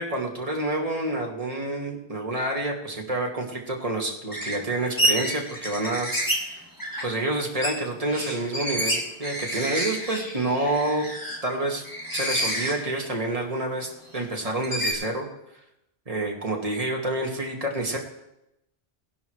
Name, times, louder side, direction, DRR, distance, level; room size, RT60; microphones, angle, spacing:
voice 1, 0.0-6.6 7.0-11.2 11.4-11.8 12.1-15.3 16.1-18.0, right 2 dB, 35° right, 0 dB, 2.0 m, -28 dB
sound 1, 4.3-6.5 6.8-7.1 7.4-11.4 11.8-13.1 13.5-13.6 14.6-14.9, equal, 20° left, 2.0 m, -29 dB
18.5 x 11.0 x 3.2 m, 0.85 s
omnidirectional pair, 1.1 m